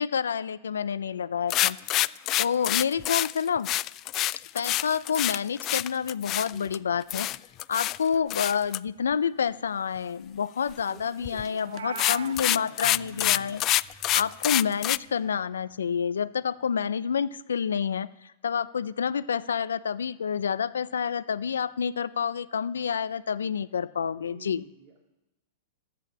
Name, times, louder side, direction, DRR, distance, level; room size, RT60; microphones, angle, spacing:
voice 1, 0.0-2.1 2.4-3.7 4.5-7.3 7.7-13.6 14.1-24.6, left 7 dB, 85° left, 16 dB, 0.6 m, -28 dB
sound 1, 1.5-6.8 7.1-8.0 8.3-8.8 11.2-11.5 11.8-15.0, left 15 dB, 35° left, 0.3 m, -26 dB
voice 2, 6.5-6.9 10.9-13.0 24.2-25.0, right 5 dB, 40° right, 0 dB, 2.5 m, -51 dB
Meow, 11.6-12.4, right 7 dB, 85° right, 0.6 m, -38 dB
sound 2, 12.8-16.6, right 6 dB, 60° right, 4.1 m, -52 dB
13.0 x 8.7 x 7.2 m, 1.0 s
hypercardioid pair, 115°, 0 cm